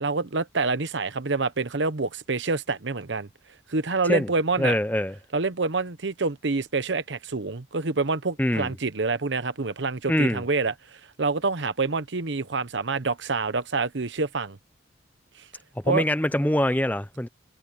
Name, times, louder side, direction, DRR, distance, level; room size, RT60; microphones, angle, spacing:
voice 1, 0.0-3.3 3.7-4.8 5.3-14.6 15.4-15.5 15.9-16.0, right 3 dB, 70° right, 1.0 m, -27 dB
voice 2, 4.6-5.2 8.4-8.7 10.1-10.4 15.8-17.3, left 1 dB, 10° left, 0.6 m, -24 dB
head